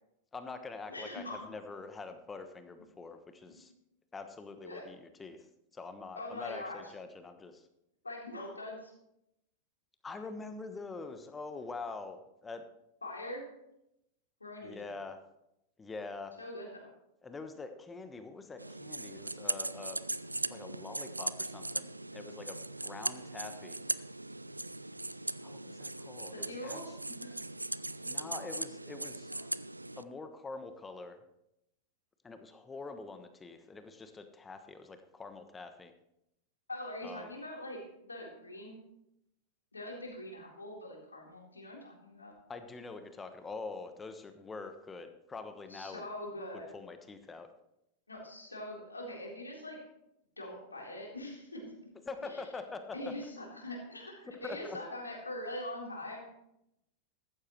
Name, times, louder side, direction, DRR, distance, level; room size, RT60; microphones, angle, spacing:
voice 1, 0.3-3.7 4.1-5.4 5.7-7.6 10.0-12.6 14.6-15.2 15.8-16.3 17.2-20.0 20.5-22.6 22.8-23.8 25.4-26.8 28.0-29.3 30.0-31.2 32.2-35.9 37.0-37.3 42.5-46.0 46.5-47.5 52.1-53.3 54.4-54.8, left 3 dB, 15° left, 8 dB, 1.2 m, -45 dB
voice 2, 0.9-1.5 3.5-3.7 4.6-4.8 6.1-6.8 8.0-8.9 13.0-13.4 14.4-14.9 16.4-16.9 23.0-23.2 26.3-27.3 28.0-28.5 29.3-29.4 36.7-38.7 39.7-42.3 45.7-46.7 48.1-49.8 50.4-51.7 52.2-52.4 52.9-56.3, left 1 dB, 80° left, -2 dB, 3.9 m, -43 dB
sound 1, 18.6-30.0, right 2 dB, 85° right, 0.3 m, -39 dB
14.5 x 12.0 x 3.2 m, 0.80 s
figure-of-eight pair, 90°, 0 cm